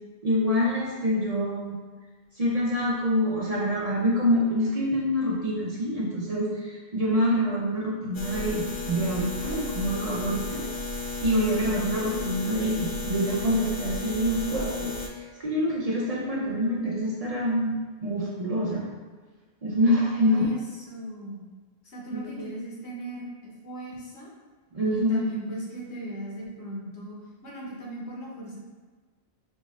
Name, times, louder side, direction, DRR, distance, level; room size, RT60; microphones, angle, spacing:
voice 1, 0.2-1.8 2.4-10.6 10.9-18.9 19.6-20.5 22.1-22.5 24.7-25.2, equal, 40° right, -5 dB, 0.6 m, -26 dB
sound 1, 8.1-15.1, left 3 dB, 45° left, 0.3 m, -33 dB
voice 2, 11.4-11.9 20.1-21.4 21.8-24.3 24.9-27.2 27.4-28.6, right 1 dB, 80° left, -4 dB, 1.3 m, -37 dB
5.2 x 2.5 x 3.1 m, 1.4 s
omnidirectional pair, 1.1 m